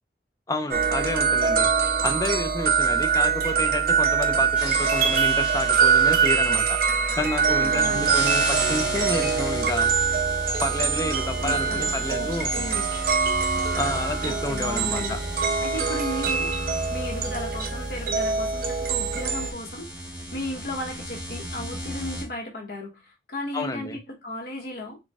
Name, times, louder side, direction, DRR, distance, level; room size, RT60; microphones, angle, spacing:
voice 1, 0.5-1.7 2.0-6.8 7.2-9.9 10.6-12.5 13.7-15.2 23.5-24.0, left 2 dB, 20° left, 6 dB, 0.4 m, -30 dB
sound 1, 0.7-19.5, right 6 dB, 50° right, 0.6 m, -24 dB
sound 2, 4.5-22.2, equal, 5° right, 1.1 m, -35 dB
voice 2, 7.6-8.1 11.4-12.9 14.2-15.2 15.6-16.5 16.9-25.0, left 1 dB, 55° left, 0 dB, 1.0 m, -35 dB
4.0 x 2.2 x 3.4 m, 0.22 s
head